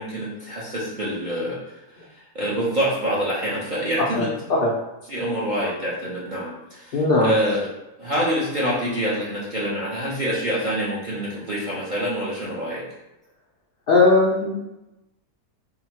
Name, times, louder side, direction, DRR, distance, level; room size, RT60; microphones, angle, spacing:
voice 1, 0.0-1.7 2.1-4.3 5.1-7.6 8.0-12.8, equal, 55° right, -7 dB, 0.5 m, -26 dB
voice 2, 4.2-4.7 6.9-7.3 13.9-14.5, left 3 dB, 75° left, -4 dB, 0.5 m, -18 dB
3.8 x 2.1 x 4.3 m, 0.96 s
omnidirectional pair, 1.7 m